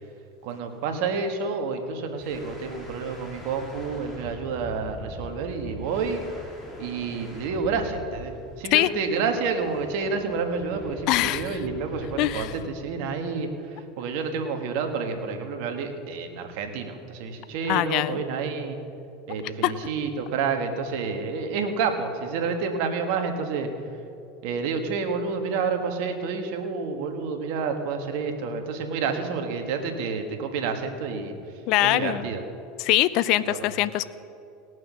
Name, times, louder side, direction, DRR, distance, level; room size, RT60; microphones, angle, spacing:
voice 1, 0.4-6.2 6.8-18.8 19.3-23.7 24.4-31.3 31.8-32.4 33.4-33.7, right 5 dB, 65° right, 5 dB, 1.4 m, -29 dB
sound 1, 2.2-12.7, equal, 20° left, 3.1 m, -43 dB
voice 2, 11.1-11.6 12.2-12.5 17.7-18.2 19.6-19.7 31.7-32.3 32.8-34.1, left 16 dB, 60° left, 16 dB, 0.4 m, -23 dB
18.0 x 6.3 x 6.1 m, 2.6 s
hypercardioid pair, 90°, 0 cm